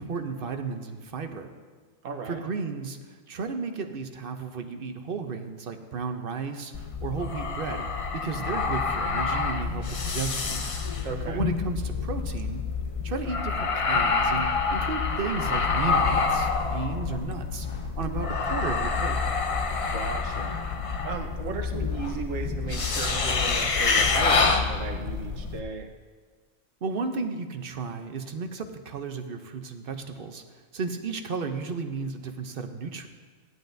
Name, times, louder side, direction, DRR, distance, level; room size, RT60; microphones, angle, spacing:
voice 1, 0.0-1.5 2.3-6.7 7.0-7.8 8.1-10.6 11.3-12.6 13.0-17.7 18.0-19.2 26.8-30.4 30.7-33.1, right 4 dB, 50° right, 6 dB, 0.8 m, -33 dB
voice 2, 2.0-2.4 11.0-11.4 19.9-20.6 21.0-25.9, right 5 dB, 70° right, 4 dB, 1.3 m, -35 dB
sound 1, 6.7-25.6, left 4 dB, 50° left, 0.4 m, -27 dB
16.0 x 11.0 x 2.6 m, 1.5 s
omnidirectional pair, 1.4 m